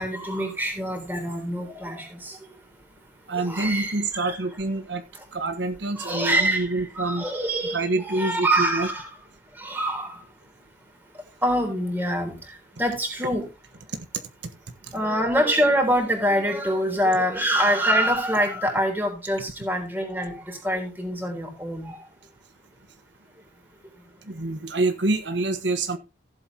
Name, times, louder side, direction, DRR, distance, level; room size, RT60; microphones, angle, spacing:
voice 1, 0.0-2.4 3.3-4.4 6.0-9.1 9.6-10.2 11.4-12.4 12.8-13.5 14.9-22.0, equal, 10° right, 3 dB, 3.7 m, -25 dB
voice 2, 3.3-5.0 5.3-7.2 7.7-8.9 13.9-14.0 24.3-26.0, right 2 dB, 90° right, 9 dB, 1.3 m, -26 dB
15.5 x 8.0 x 2.9 m, 0.27 s
head